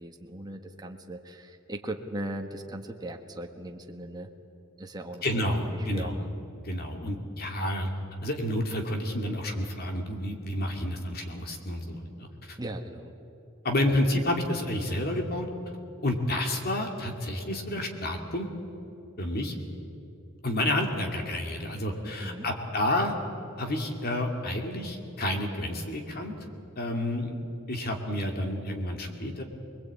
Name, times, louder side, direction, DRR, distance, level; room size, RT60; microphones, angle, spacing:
voice 1, 0.0-4.3 4.8-6.3 12.6-13.1 22.0-22.5, right 1 dB, 20° right, 3 dB, 1.4 m, -39 dB
voice 2, 5.2-6.2 6.6-7.9 8.2-12.6 13.6-15.5 16.0-18.5 19.2-19.5 20.4-23.1 23.6-26.3 26.8-27.3 27.7-29.4, left 1 dB, 45° left, 3 dB, 2.5 m, -30 dB
25.5 x 21.0 x 8.6 m, 2.8 s
head